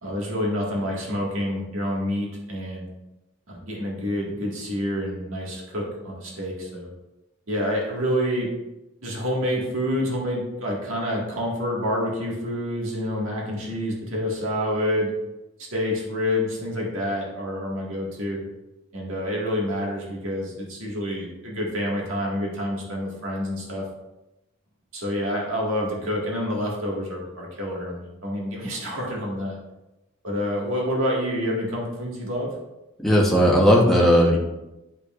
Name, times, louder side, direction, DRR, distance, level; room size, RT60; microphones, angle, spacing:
voice 1, 0.0-2.9 3.5-6.9 7.5-8.5 9.0-15.1 15.7-18.4 18.9-23.9 24.9-29.6 30.2-32.5, equal, 80° right, -3 dB, 1.8 m, -28 dB
voice 2, 33.0-34.4, equal, ahead, -4 dB, 1.0 m, -16 dB
9.6 x 5.5 x 2.5 m, 0.96 s
head